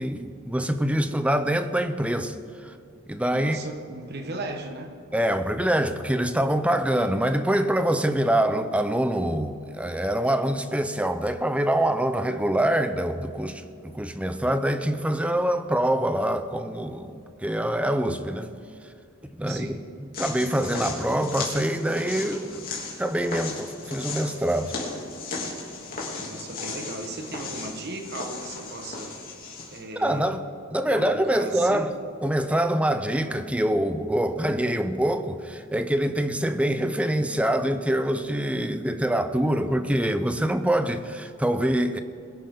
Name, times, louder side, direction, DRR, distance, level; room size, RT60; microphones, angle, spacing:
voice 1, 0.0-2.3 2.6-2.7 3.1-3.6 5.1-18.5 19.4-19.7 20.0-22.7 23.0-24.8 29.9-30.4 30.7-31.9 32.2-42.0, right 1 dB, 5° right, 0.6 m, -25 dB
voice 2, 3.3-5.0 19.5-19.8 26.2-29.1 29.7-30.4 30.9-31.9, right 2 dB, 50° right, 1.4 m, -36 dB
sound 1, 20.1-29.8, left 3 dB, 45° left, 2.9 m, -36 dB
21.5 x 11.0 x 3.9 m
head